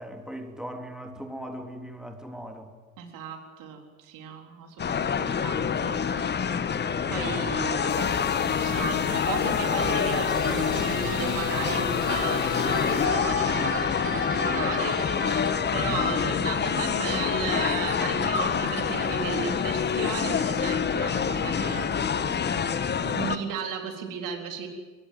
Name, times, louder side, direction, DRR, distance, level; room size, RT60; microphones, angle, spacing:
voice 1, 0.0-2.7, equal, ahead, 4 dB, 3.3 m, -39 dB
voice 2, 3.0-6.3 7.1-22.1 23.0-24.7, right 7 dB, 50° right, 3 dB, 4.0 m, -35 dB
sound 1, 4.8-23.4, left 7 dB, 25° left, 1.4 m, -26 dB
sound 2, 7.9-13.1, left 10 dB, 65° left, 1.9 m, -40 dB
sound 3, 9.7-15.7, right 3 dB, 30° right, 7.6 m, -35 dB
24.5 x 20.5 x 7.7 m, 1.3 s
figure-of-eight pair, 65°, 42 cm